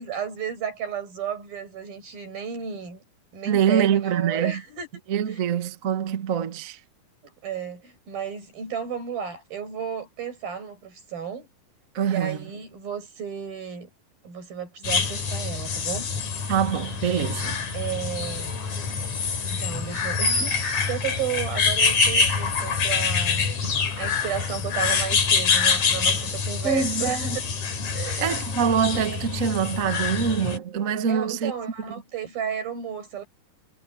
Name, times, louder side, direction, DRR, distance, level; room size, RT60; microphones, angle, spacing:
voice 1, 0.0-3.0 3.3-4.9 5.3-5.4 7.4-11.5 12.1-13.9 14.2-16.1 17.7-18.5 19.4-23.5 24.0-27.4 27.9-28.4 31.1-33.2, right 8 dB, 90° right, 9.0 m, -33 dB
voice 2, 3.4-4.6 5.1-6.8 11.9-12.5 16.5-17.6 26.6-27.4 28.1-31.5, right 7 dB, 55° right, 0.9 m, -24 dB
sound 1, 14.8-30.6, left 5 dB, 55° left, 4.6 m, -25 dB
omnidirectional pair, 4.0 m